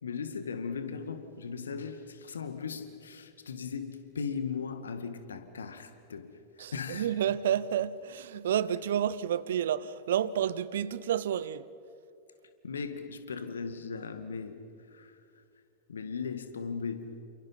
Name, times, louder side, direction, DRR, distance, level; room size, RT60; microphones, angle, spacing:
voice 1, 0.0-7.1 12.6-15.2 15.9-17.1, left 5 dB, 70° left, 2.0 m, -38 dB
voice 2, 6.6-11.7, right 10 dB, 60° right, 0.8 m, -30 dB
29.0 x 28.0 x 5.8 m
figure-of-eight pair, 90°, 0 cm